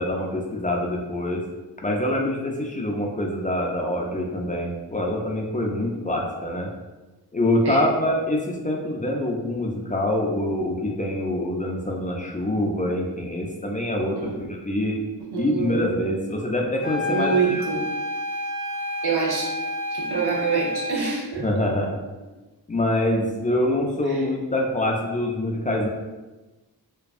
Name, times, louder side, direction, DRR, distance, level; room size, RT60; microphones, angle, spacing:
voice 1, 0.0-1.4 1.8-6.7 7.3-15.0 15.4-17.6 21.4-22.0 22.7-25.9, left 1 dB, 20° left, -1 dB, 0.3 m, -25 dB
voice 2, 15.3-15.8 17.1-17.8 19.0-19.5 19.9-21.4 24.1-24.3, right 5 dB, 85° right, -3 dB, 0.7 m, -26 dB
sound 1, 16.8-21.1, left 1 dB, 50° right, 1.0 m, -29 dB
2.6 x 2.2 x 2.3 m, 1.2 s
cardioid pair, 50°, 38 cm